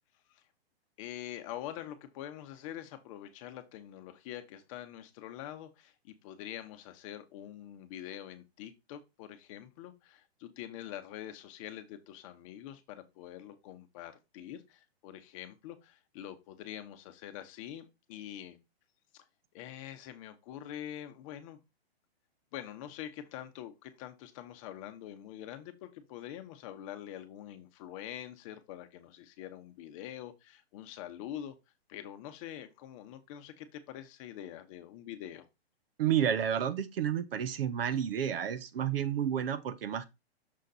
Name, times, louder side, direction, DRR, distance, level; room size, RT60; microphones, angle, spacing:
voice 1, 1.0-18.6 19.1-19.2 19.5-21.6 22.5-31.6 31.9-35.4, left 11 dB, 30° left, 0.9 m, -45 dB
voice 2, 36.0-40.1, right 9 dB, 65° right, 1.0 m, -30 dB
6.6 x 4.0 x 4.0 m
hypercardioid pair, 150°, 32 cm